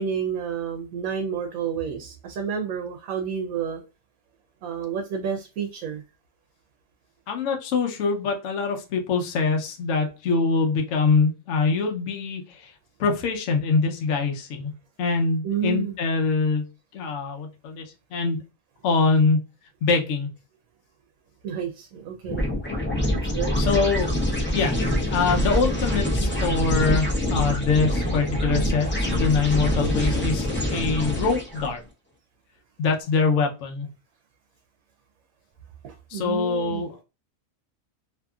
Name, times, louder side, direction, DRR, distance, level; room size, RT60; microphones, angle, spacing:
voice 1, 0.0-3.8 4.6-6.0 15.4-16.0 21.4-22.4 23.1-23.5 35.8-36.8, right 7 dB, 80° right, 1.0 m, -30 dB
voice 2, 7.3-12.7 13.0-14.7 15.0-16.7 16.9-17.8 18.1-18.4 18.8-19.4 19.8-20.3 23.6-24.2 24.5-24.7 25.1-31.8 32.8-33.9 36.1-37.0, left 4 dB, 65° left, 1.0 m, -24 dB
sound 1, 22.2-31.7, equal, 15° left, 0.4 m, -25 dB
2.8 x 2.6 x 2.3 m
omnidirectional pair, 1.4 m